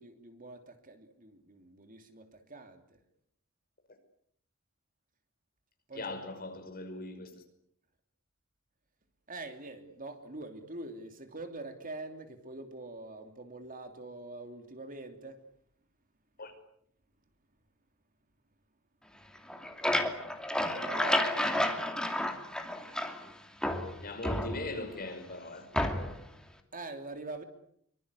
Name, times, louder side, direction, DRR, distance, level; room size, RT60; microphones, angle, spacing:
voice 1, 0.0-3.0 5.9-6.1 9.3-15.4 20.7-21.9 26.7-27.4, right 2 dB, 40° right, 3.0 m, -44 dB
voice 2, 5.9-7.4 16.4-16.5 24.0-25.7, left 2 dB, 45° left, 5.8 m, -40 dB
sound 1, 19.4-23.3 23.6-25.0 25.7-26.3, left 1 dB, 5° left, 2.8 m, -31 dB
25.5 x 24.5 x 8.3 m
head